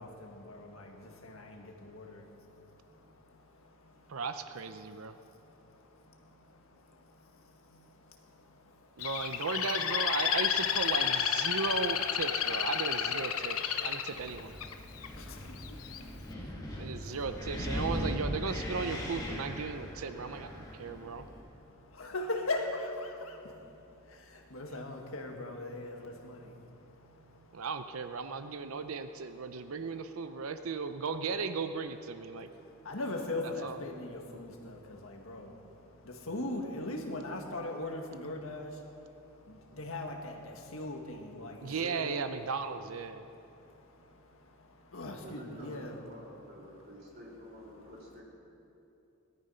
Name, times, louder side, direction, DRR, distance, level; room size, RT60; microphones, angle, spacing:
voice 1, 0.0-4.2 4.8-9.1 13.4-14.1 14.6-17.2 20.6-27.7 28.6-29.0 29.2-29.8 30.2-30.5 32.3-42.2 43.2-46.0, left 2 dB, 75° left, 2 dB, 1.8 m, -42 dB
voice 2, 4.1-5.1 9.0-14.5 16.8-21.3 27.5-32.5 33.6-33.8 41.6-43.2, right 4 dB, 80° right, 9 dB, 0.7 m, -36 dB
Bird, 9.0-15.1 15.6-16.0, left 8 dB, 90° left, 0.9 m, -31 dB
Wind, 14.1-21.4, equal, 20° left, 2.8 m, -39 dB
voice 3, 45.2-48.2, equal, 45° right, -4 dB, 3.8 m, -49 dB
19.0 x 12.5 x 5.6 m, 2.9 s
head